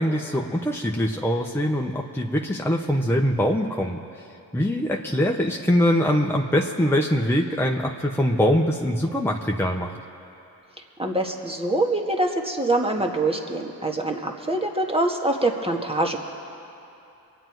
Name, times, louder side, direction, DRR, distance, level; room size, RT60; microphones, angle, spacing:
voice 1, 0.0-4.0 4.5-9.9, equal, 5° left, 0 dB, 1.1 m, -23 dB
voice 2, 11.0-16.2, right 2 dB, 15° right, 2 dB, 1.9 m, -24 dB
23.5 x 9.3 x 4.7 m, 2.8 s
supercardioid pair, 40°, 40 cm